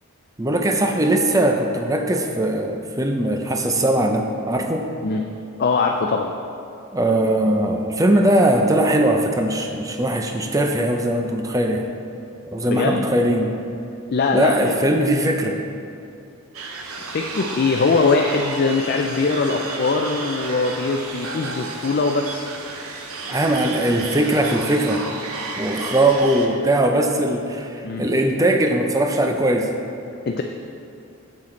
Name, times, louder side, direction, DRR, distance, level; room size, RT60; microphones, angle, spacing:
voice 1, 0.4-4.9 6.9-11.8 12.5-13.5 14.3-15.6 23.3-25.0 25.6-29.7, right 1 dB, 15° right, 3 dB, 0.5 m, -20 dB
voice 2, 5.6-6.3 12.7-13.1 14.1-14.7 17.1-22.5 27.8-28.0 30.3-30.4, left 4 dB, 45° left, 3 dB, 0.4 m, -21 dB
sound 1, 16.5-26.5, right 3 dB, 80° right, 0.8 m, -32 dB
7.5 x 7.5 x 3.8 m, 2.6 s
head